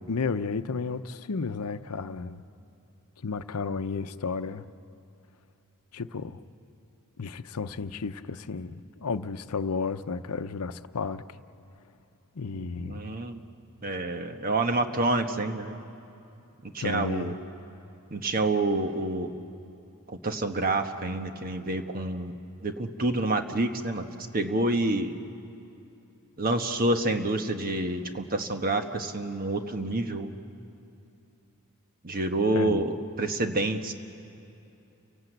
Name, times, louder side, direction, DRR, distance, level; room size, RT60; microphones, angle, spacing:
voice 1, 0.1-2.4 3.2-4.7 5.9-6.4 7.2-11.4 12.3-13.2 16.8-17.4 32.5-32.8, left 4 dB, 80° left, 11 dB, 0.7 m, -32 dB
voice 2, 12.5-13.4 13.8-15.8 16.6-17.3 18.1-19.3 20.1-22.4 22.6-24.0 24.3-25.1 26.4-30.3 32.0-33.9, right 2 dB, 40° right, 6 dB, 1.3 m, -28 dB
30.0 x 18.0 x 8.0 m, 2.8 s
head